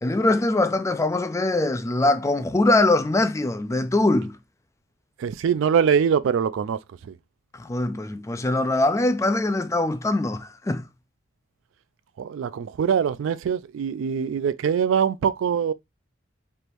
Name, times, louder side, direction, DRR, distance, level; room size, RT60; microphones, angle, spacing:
voice 1, 0.0-4.4 7.5-10.9, left 2 dB, 15° left, 0.3 m, -22 dB
voice 2, 5.2-7.1 12.2-15.7, right 7 dB, 70° right, 0.3 m, -23 dB
4.4 x 3.4 x 2.5 m
head